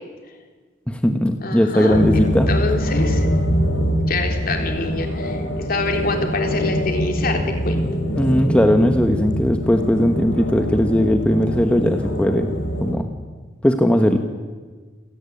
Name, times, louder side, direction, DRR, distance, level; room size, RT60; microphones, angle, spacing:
voice 1, 0.9-2.5 8.2-12.5 12.8-13.1 13.6-14.2, equal, 5° left, 5 dB, 1.3 m, -18 dB
voice 2, 1.4-3.3 4.0-7.8, left 2 dB, 50° left, 4 dB, 3.8 m, -26 dB
sound 1, 1.9-12.9, equal, 75° left, 4.6 m, -23 dB
28.0 x 17.5 x 8.6 m, 1.4 s
head